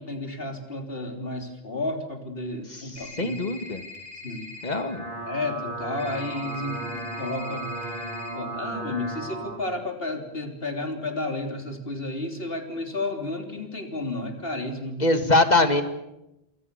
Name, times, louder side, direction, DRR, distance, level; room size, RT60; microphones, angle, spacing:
voice 1, 0.0-3.3 4.2-4.6 5.3-7.7 8.3-15.0, left 2 dB, 65° left, 5 dB, 3.7 m, -32 dB
voice 2, 2.7-3.8 4.6-5.0 15.0-15.8, left 2 dB, 45° left, 8 dB, 2.3 m, -23 dB
sound 1, 3.0-4.8 6.0-8.3, left 3 dB, 25° right, 6.2 m, -42 dB
sound 2, 4.6-9.6, right 2 dB, 55° right, 5.0 m, -35 dB
28.0 x 24.5 x 7.0 m, 0.90 s
omnidirectional pair, 1.1 m